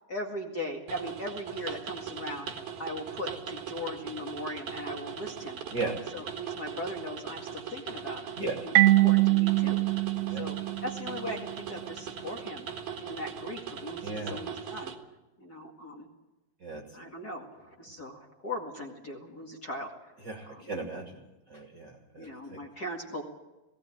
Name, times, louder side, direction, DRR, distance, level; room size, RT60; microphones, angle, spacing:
voice 1, 0.1-2.5 2.8-5.6 6.1-8.4 8.6-12.7 13.0-14.9 15.4-16.1 16.9-20.1 20.4-20.7 22.2-23.2, left 1 dB, 35° left, 1 dB, 1.7 m, -39 dB
sound 1, 0.9-15.0, right 7 dB, 70° right, 3.4 m, -40 dB
Marimba xylophone, 8.8-11.4, right 17 dB, 85° right, 3.0 m, -23 dB
voice 2, 14.0-14.4 16.6-17.0 20.2-21.2 21.5-22.6, right 3 dB, 30° right, 0 dB, 2.5 m, -36 dB
20.0 x 17.0 x 8.8 m, 1.0 s
omnidirectional pair, 4.6 m